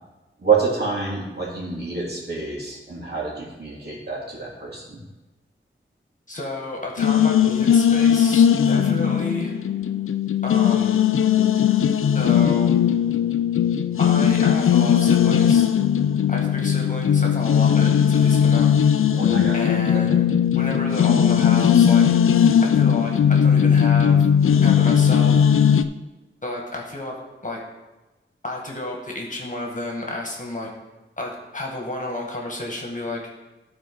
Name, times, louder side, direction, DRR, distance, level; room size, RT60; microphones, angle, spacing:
voice 1, 0.4-5.0 19.1-19.6 19.9-20.0, right 5 dB, 50° right, -5 dB, 3.0 m, -27 dB
voice 2, 6.3-9.5 10.4-11.0 12.1-12.8 14.0-15.7 16.3-18.7 19.5-20.2 20.6-22.0 22.6-24.2 24.6-25.4 26.4-27.1 27.4-27.6 28.4-30.7 31.2-33.2, left 2 dB, 40° left, -1 dB, 1.8 m, -31 dB
sound 1, 7.0-25.8, left 8 dB, 80° left, 0.4 m, -18 dB
11.5 x 4.5 x 5.3 m, 1.1 s
wide cardioid pair, 70°, 21 cm